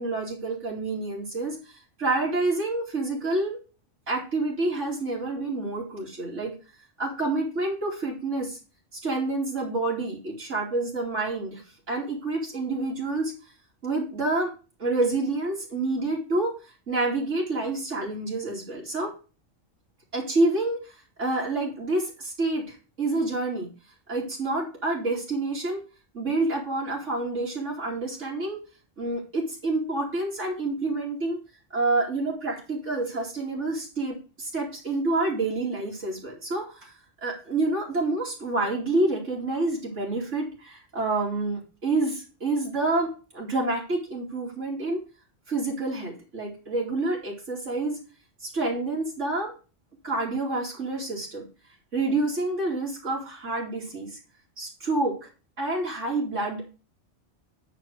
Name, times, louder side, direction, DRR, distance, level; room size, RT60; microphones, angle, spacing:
voice 1, 0.0-3.6 4.1-6.5 7.0-8.6 9.0-11.6 11.9-13.3 13.8-14.5 14.8-16.6 16.9-19.1 20.1-23.7 24.1-25.8 26.1-28.6 29.0-31.4 31.7-36.9 37.2-45.0 45.5-48.0 48.4-49.5 50.0-51.4 51.9-54.2 54.6-55.2 55.6-56.8, right 2 dB, 80° right, -4 dB, 3.4 m, -28 dB
9.9 x 4.3 x 6.3 m, 0.33 s
omnidirectional pair, 1.2 m